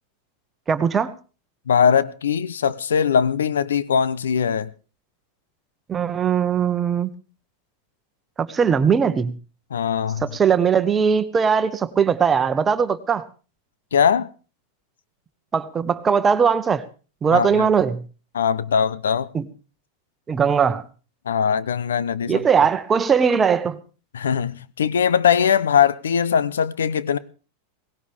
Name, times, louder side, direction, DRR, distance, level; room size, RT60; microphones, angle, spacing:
voice 1, 0.7-1.1 5.9-7.1 8.4-9.3 10.2-13.2 15.5-16.8 17.2-18.0 19.3-19.4 20.3-20.8 22.3-23.8, right 6 dB, 25° right, 1.2 m, -19 dB
voice 2, 1.7-4.7 9.7-10.4 13.9-14.3 17.3-17.7 18.3-19.3 21.3-22.4 24.1-27.2, left 7 dB, 85° left, 0.8 m, -20 dB
18.5 x 17.0 x 3.6 m
hypercardioid pair, 105°, 0 cm